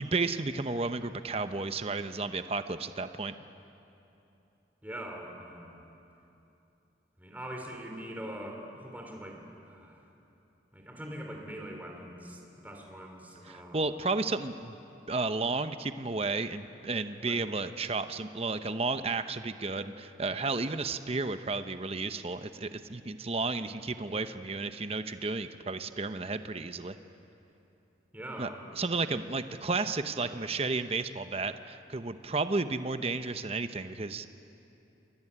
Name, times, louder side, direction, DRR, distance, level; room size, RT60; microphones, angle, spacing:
voice 1, 0.0-3.3 13.5-14.8 15.1-27.0 28.4-34.3, right 3 dB, 35° right, 10 dB, 0.8 m, -32 dB
voice 2, 4.8-5.8 7.2-10.0 10.7-14.0 17.3-17.4 28.1-28.6, right 1 dB, 10° right, 1 dB, 3.4 m, -43 dB
27.5 x 21.5 x 9.9 m, 2.9 s
head